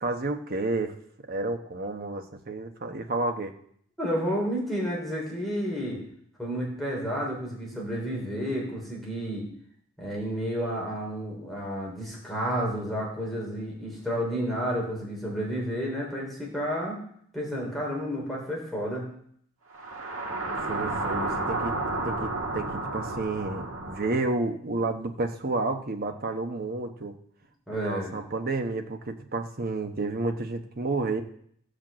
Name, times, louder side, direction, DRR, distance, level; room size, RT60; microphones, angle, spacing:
voice 1, 0.0-0.9 1.3-3.5 20.7-21.8 22.0-27.1 27.7-31.2, right 2 dB, 45° right, 5 dB, 1.1 m, -30 dB
voice 2, 4.0-6.0 6.4-9.5 10.0-17.0 17.3-19.1 27.7-28.1, equal, ahead, -4 dB, 3.0 m, -31 dB
sound 1, 19.7-24.2, right 2 dB, 80° right, 1.6 m, -31 dB
15.0 x 5.2 x 7.5 m, 0.65 s
head